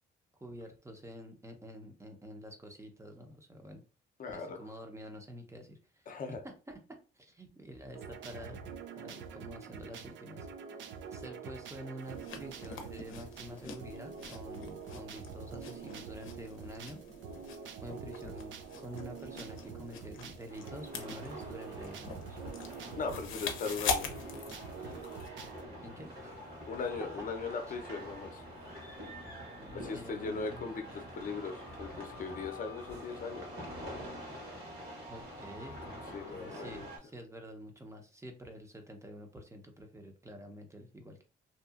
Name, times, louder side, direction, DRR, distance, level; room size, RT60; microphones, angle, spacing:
voice 1, 0.4-3.8 4.2-6.0 6.4-8.7 9.0-10.5 11.1-17.0 17.8-18.5 18.8-22.4 25.8-26.5 27.7-27.8 29.6-30.7 35.1-35.8 36.3-41.2, equal, 15° right, 4 dB, 0.7 m, -48 dB
voice 2, 4.2-4.6 6.1-6.4 22.9-24.1 26.7-28.4 29.7-33.6 36.1-36.9, left 4 dB, 45° left, 5 dB, 0.6 m, -39 dB
sound 1, 7.9-25.7, right 6 dB, 75° right, 0.5 m, -46 dB
sound 2, 12.0-25.3, left 5 dB, 85° left, 0.6 m, -43 dB
sound 3, 20.5-37.0, equal, 55° right, 1.4 m, -46 dB
2.7 x 2.4 x 2.4 m, 0.34 s
cardioid pair, 90°, 20 cm